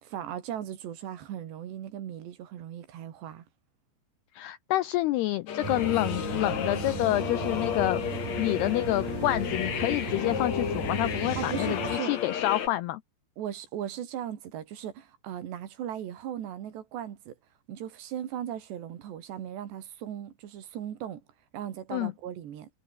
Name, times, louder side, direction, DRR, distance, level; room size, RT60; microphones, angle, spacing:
voice 1, 0.0-3.5 11.4-12.2 13.4-17.4 17.7-21.2 21.5-22.7, right 10 dB, 65° right, 4.2 m, -38 dB
voice 2, 4.3-8.0 8.4-13.0 21.9-22.1, left 16 dB, 85° left, 2.3 m, -28 dB
sound 1, 5.5-12.7, left 8 dB, 50° left, 2.4 m, -32 dB
sound 2, 5.6-12.0, right 6 dB, 50° right, 5.8 m, -36 dB
omnidirectional pair, 5.6 m